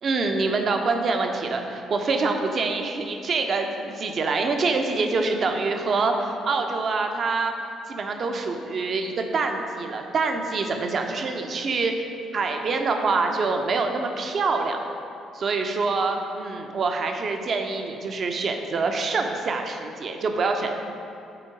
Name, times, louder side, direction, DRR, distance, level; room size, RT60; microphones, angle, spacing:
voice 1, 0.0-7.5 7.9-11.9 12.3-14.8 15.3-20.7, right 3 dB, 45° right, 4 dB, 0.7 m, -25 dB
10.0 x 4.5 x 4.9 m, 2.8 s
figure-of-eight pair, 45°, 0 cm